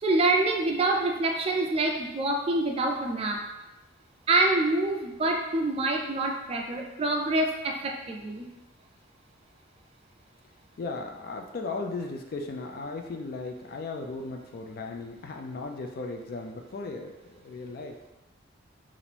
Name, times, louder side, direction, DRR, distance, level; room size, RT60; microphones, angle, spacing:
voice 1, 0.0-3.4 4.3-8.5, right 2 dB, 30° right, 2 dB, 0.3 m, -26 dB
voice 2, 10.8-18.0, left 3 dB, 50° left, 3 dB, 0.3 m, -36 dB
2.9 x 2.5 x 3.2 m, 1.0 s
head